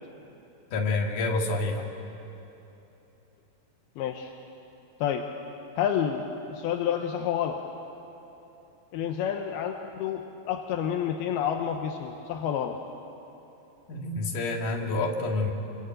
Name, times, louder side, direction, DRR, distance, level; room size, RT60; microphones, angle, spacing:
voice 1, 0.7-1.9 13.9-15.5, left 2 dB, 55° left, 1 dB, 3.5 m, -28 dB
voice 2, 4.0-4.3 5.0-5.2 5.8-7.6 8.9-12.8, left 9 dB, 80° left, 4 dB, 2.9 m, -29 dB
28.0 x 23.5 x 9.1 m, 3.0 s
omnidirectional pair, 4.6 m